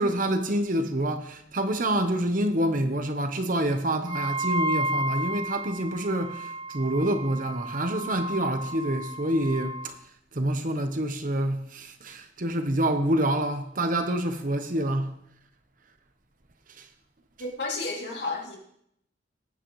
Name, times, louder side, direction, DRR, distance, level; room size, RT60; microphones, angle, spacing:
voice 1, 0.0-10.0 10.3-15.1 16.8-16.9, right 1 dB, 50° right, 1.0 m, -27 dB
Wind instrument woodwind instrument, 4.0-9.9, right 1 dB, 25° right, 0.6 m, -33 dB
voice 2, 17.4-18.6, left 3 dB, 70° left, 2.8 m, -32 dB
19.0 x 8.8 x 3.2 m
head